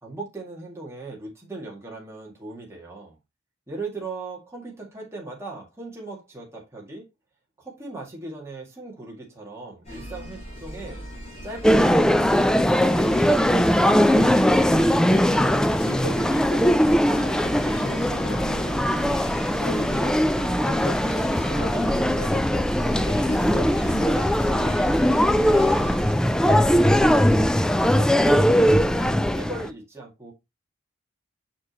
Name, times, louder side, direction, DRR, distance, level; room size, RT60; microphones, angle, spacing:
voice 1, 0.0-3.2 3.7-7.0 7.6-11.1 11.4-13.7 26.4-30.3, right 2 dB, 15° right, 2.2 m, -38 dB
sound 1, 9.8-26.1, equal, 35° left, 4.1 m, -36 dB
sound 2, 11.6-29.7, equal, 5° left, 0.3 m, -20 dB
voice 2, 14.7-19.1 19.6-25.3, left 1 dB, 50° left, 1.9 m, -38 dB
6.4 x 6.1 x 2.9 m
head